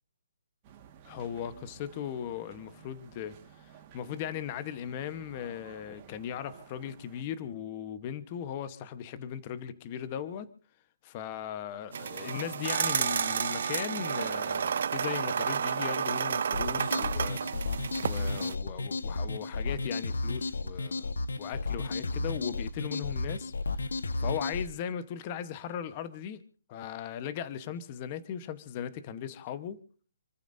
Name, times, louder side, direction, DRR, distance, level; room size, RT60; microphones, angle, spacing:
sound 1, 0.6-7.2, right 9 dB, 20° right, 1.6 m, -54 dB
voice 1, 1.0-10.5 11.0-17.4 18.0-21.1 21.4-23.8 24.2-26.4 26.7-29.8, left 9 dB, 20° left, 1.0 m, -38 dB
sound 2, 11.9-18.5, right 7 dB, 45° right, 0.6 m, -31 dB
sound 3, 16.5-24.7, left 3 dB, 90° left, 1.3 m, -33 dB
28.0 x 14.5 x 2.6 m
hypercardioid pair, 175°, 0 cm